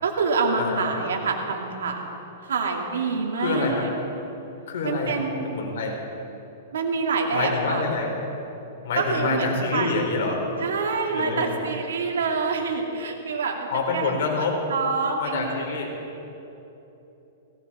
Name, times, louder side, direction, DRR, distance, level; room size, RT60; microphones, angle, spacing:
voice 1, 0.0-2.0 2.4-3.9 4.8-5.5 6.7-7.8 9.0-9.9 10.6-15.6, right 4 dB, 85° right, 1 dB, 2.4 m, -26 dB
voice 2, 3.4-3.8 4.7-5.2 5.4-6.0 7.3-8.1 8.8-10.4 11.1-11.5 13.7-14.6 15.2-15.9, left 4 dB, 65° left, 0 dB, 3.8 m, -26 dB
17.5 x 17.0 x 4.3 m, 3.0 s
hypercardioid pair, 145°, 0 cm